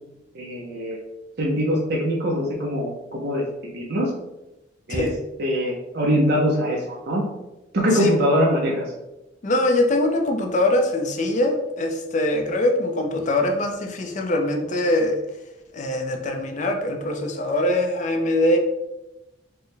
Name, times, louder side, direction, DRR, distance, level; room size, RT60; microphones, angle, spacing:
voice 1, 0.3-1.0 1.4-3.4 3.7-4.1 4.9-5.1 5.4-7.2 7.7-8.9, equal, 55° right, -3 dB, 0.6 m, -22 dB
voice 2, 9.4-15.2 15.7-18.6, left 1 dB, 40° left, 4 dB, 0.5 m, -22 dB
4.4 x 2.1 x 3.2 m, 0.94 s
head